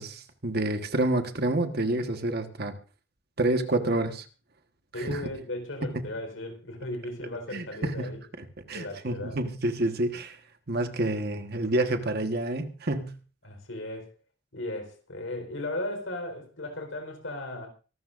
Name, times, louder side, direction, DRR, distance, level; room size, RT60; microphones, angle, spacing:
voice 1, 0.0-2.7 3.4-4.2 5.0-5.2 7.5-10.4 10.7-13.2, right 2 dB, 55° right, 7 dB, 1.4 m, -28 dB
voice 2, 4.9-8.2 8.7-9.4 13.4-14.1 14.5-17.7, left 1 dB, 80° left, 4 dB, 4.3 m, -36 dB
24.0 x 12.5 x 2.6 m, 0.35 s
head